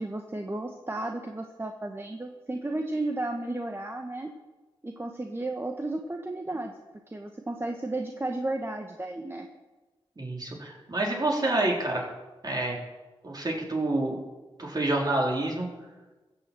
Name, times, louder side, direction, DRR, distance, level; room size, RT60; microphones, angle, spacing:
voice 1, 0.0-4.3 4.8-6.8 7.1-9.5, right 2 dB, 25° right, 3 dB, 1.2 m, -33 dB
voice 2, 10.2-12.1 12.4-12.8 13.2-14.2 14.6-15.7, right 2 dB, 40° right, -1 dB, 3.9 m, -28 dB
15.0 x 7.0 x 7.5 m, 1.2 s
cardioid pair, 50°, 10 cm